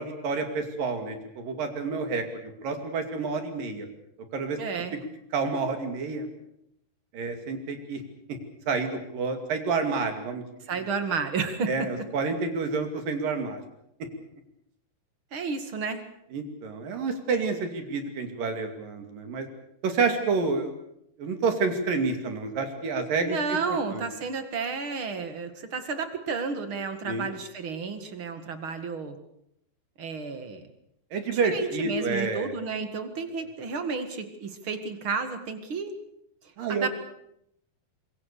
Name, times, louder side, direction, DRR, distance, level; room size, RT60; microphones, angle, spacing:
voice 1, 0.0-2.2 2.6-3.9 4.3-4.6 5.3-6.3 7.1-8.0 8.7-10.4 11.7-13.6 16.3-19.5 19.8-20.7 21.2-24.1 27.1-27.3 31.1-32.5 36.6-36.9, right 4 dB, 60° right, 6 dB, 4.0 m, -29 dB
voice 2, 4.6-4.9 10.7-11.9 15.3-16.0 23.3-29.2 30.0-30.7 31.4-36.0 36.7-36.9, right 5 dB, 40° right, 9 dB, 2.1 m, -31 dB
25.5 x 22.5 x 6.8 m, 0.76 s
omnidirectional pair, 4.7 m